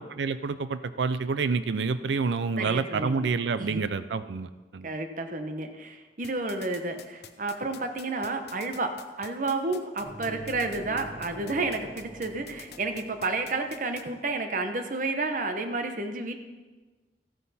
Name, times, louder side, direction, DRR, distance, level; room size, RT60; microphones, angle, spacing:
voice 1, 0.0-4.9, right 4 dB, 80° right, 13 dB, 0.4 m, -28 dB
voice 2, 2.6-3.3 3.6-3.8 4.8-8.9 9.2-16.4, right 3 dB, 45° right, 7 dB, 0.9 m, -31 dB
sound 1, 6.2-14.0, left 9 dB, 65° left, 0.8 m, -46 dB
sound 2, 10.0-13.8, right 2 dB, 20° right, 2.9 m, -45 dB
14.5 x 9.3 x 4.2 m, 1.3 s
head